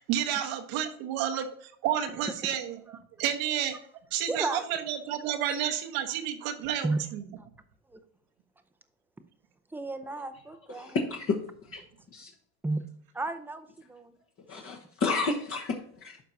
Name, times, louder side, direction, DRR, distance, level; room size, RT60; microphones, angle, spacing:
voice 1, 0.0-3.8 4.1-7.2, right 10 dB, 75° right, 5 dB, 1.3 m, -31 dB
voice 2, 4.3-4.7 6.8-7.0 7.9-8.0 9.7-11.0 12.6-12.8 13.1-14.1, right 2 dB, 5° right, 9 dB, 0.6 m, -33 dB
voice 3, 10.7-11.8 12.1-12.3 14.5-16.2, left 3 dB, 40° left, -1 dB, 1.1 m, -31 dB
12.0 x 4.6 x 2.7 m, 0.65 s
supercardioid pair, 115°, 36 cm